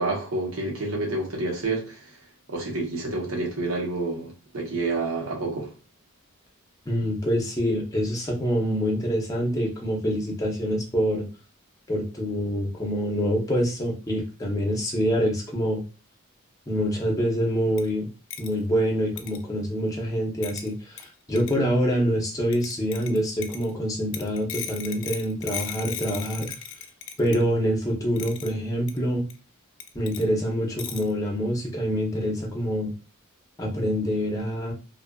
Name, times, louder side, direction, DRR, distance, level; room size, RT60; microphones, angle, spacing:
voice 1, 0.0-2.1 2.5-5.7, right 2 dB, 70° right, 1.0 m, -29 dB
voice 2, 6.9-11.2 11.9-15.8 16.7-18.1 18.4-26.5 27.2-29.2 29.9-32.9 33.6-34.7, equal, 15° left, 0.6 m, -26 dB
sound 1, 17.8-17.9 18.3-18.5 19.2-19.4 20.4-20.7 21.0-21.1 21.4-21.6 22.5-23.7 24.1-27.4 28.2-28.5 28.9-29.0 29.3-29.4 29.8-30.2 30.8-31.1, left 8 dB, 60° left, 0.3 m, -36 dB
2.5 x 2.4 x 2.2 m
head